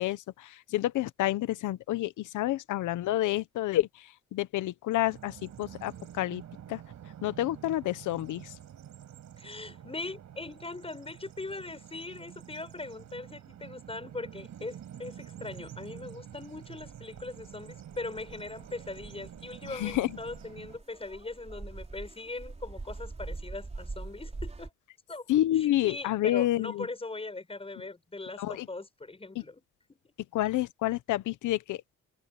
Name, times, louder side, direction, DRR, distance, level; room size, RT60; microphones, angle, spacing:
voice 1, 0.0-3.9 4.3-6.4 6.7-6.8 7.2-8.5 19.7-20.1 25.3-26.9 28.4-28.7 29.3-29.4 30.3-32.0, left 14 dB, 85° left, 1.1 m, -29 dB
Bird vocalization bird call bird song, 5.0-20.8, right 10 dB, 65° right, 6.6 m, -48 dB
voice 2, 9.4-24.7 25.1-25.3 25.5-29.6 29.9-30.0, left 3 dB, 20° left, 7.6 m, -40 dB
sound 1, 16.3-24.7, right 3 dB, 20° right, 4.2 m, -44 dB
cardioid pair, 90°, 30 cm